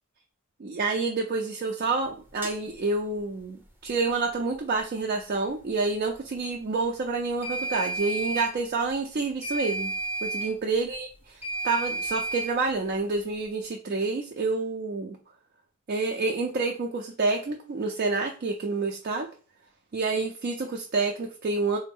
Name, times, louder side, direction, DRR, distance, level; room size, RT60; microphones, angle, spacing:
voice 1, 0.6-3.6 3.8-9.9 10.2-11.1 11.6-15.2 15.9-19.3 19.9-21.8, right 3 dB, 45° right, 2 dB, 0.4 m, -28 dB
sound 1, 2.4-2.6 7.4-8.5 9.4-10.5 11.4-12.5, right 2 dB, 10° right, 0.7 m, -31 dB
4.0 x 2.0 x 3.4 m, 0.39 s
head